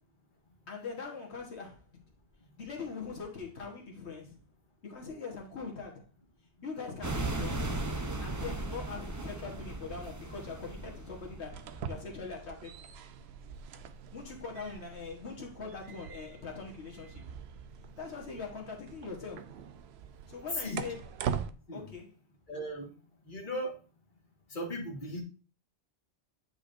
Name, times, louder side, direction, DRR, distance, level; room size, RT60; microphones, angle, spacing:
voice 1, 0.7-2.1 2.6-4.4 4.8-6.1 6.6-7.8 8.2-12.9 14.1-17.3 18.0-19.5 20.3-21.0 21.7-22.2, left 4 dB, 85° left, 1.6 m, -42 dB
sound 1, 7.0-12.2, right 2 dB, 20° right, 0.6 m, -37 dB
sound 2, 11.4-21.5, right 7 dB, 75° right, 0.8 m, -42 dB
voice 2, 22.5-22.9 23.3-23.7 24.5-25.2, equal, 50° left, 1.8 m, -37 dB
8.9 x 5.0 x 2.6 m
omnidirectional pair, 1.1 m